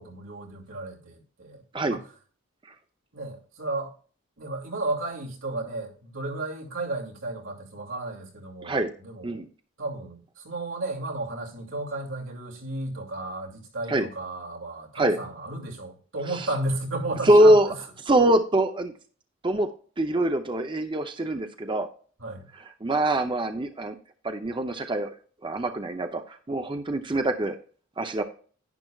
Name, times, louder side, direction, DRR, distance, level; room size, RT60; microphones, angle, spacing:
voice 1, 0.0-1.6 1.9-2.0 3.1-3.9 4.4-9.4 9.8-17.8 22.2-22.5, right 2 dB, 85° right, -1 dB, 2.7 m, -33 dB
voice 2, 17.3-17.7 18.1-18.9 19.4-19.7 20.0-21.9 22.8-24.0 24.2-25.1 25.4-27.6 28.0-28.2, right 1 dB, 25° right, 7 dB, 0.6 m, -23 dB
10.5 x 10.0 x 2.4 m, 0.42 s
head